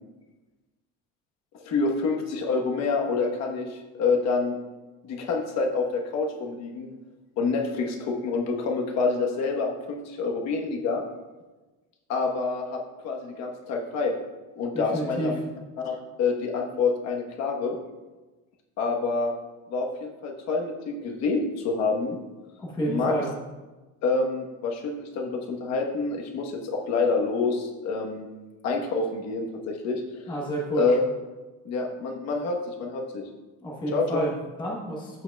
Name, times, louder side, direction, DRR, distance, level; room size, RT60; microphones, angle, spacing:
voice 1, 1.5-4.6 5.0-6.9 7.4-11.0 12.1-14.1 14.5-15.4 15.8-17.8 18.8-19.3 19.7-22.2 22.9-23.1 24.0-28.3 28.6-30.3 30.7-31.1 31.6-33.3 33.9-34.2, left 4 dB, 45° left, 1 dB, 1.1 m, -27 dB
voice 2, 14.7-15.3 22.6-23.3 30.3-30.9 33.6-35.2, right 1 dB, 10° left, -4 dB, 0.9 m, -30 dB
13.5 x 5.5 x 2.3 m, 1.2 s
cardioid pair, 175°, 37 cm